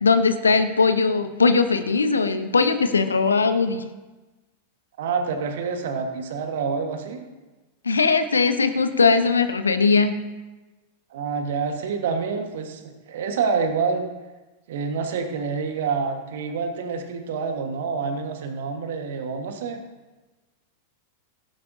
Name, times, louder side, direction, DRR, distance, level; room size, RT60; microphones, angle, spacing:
voice 1, 0.0-3.8 7.8-10.2, left 4 dB, 75° left, 11 dB, 0.8 m, -20 dB
voice 2, 5.0-7.2 11.1-14.1 14.7-19.8, right 5 dB, 55° right, 5 dB, 1.5 m, -27 dB
17.5 x 10.5 x 2.7 m, 1.2 s
figure-of-eight pair, 90°, 0 cm